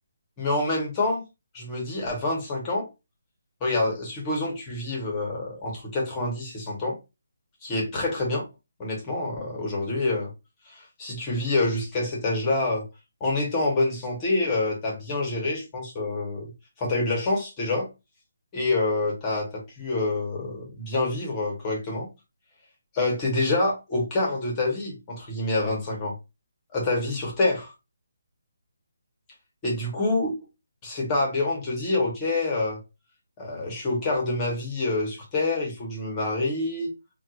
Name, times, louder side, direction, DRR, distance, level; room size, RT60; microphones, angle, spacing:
voice 1, 0.4-1.2 1.5-2.9 3.6-7.0 7.6-8.4 8.8-10.3 10.7-12.8 13.2-16.5 16.8-17.9 18.5-22.1 22.9-26.1 26.7-27.7 29.6-30.3 30.8-32.8 33.4-36.9, left 2 dB, 15° left, 0.8 m, -27 dB
4.2 x 2.2 x 2.3 m
hypercardioid pair, 175°, 0 cm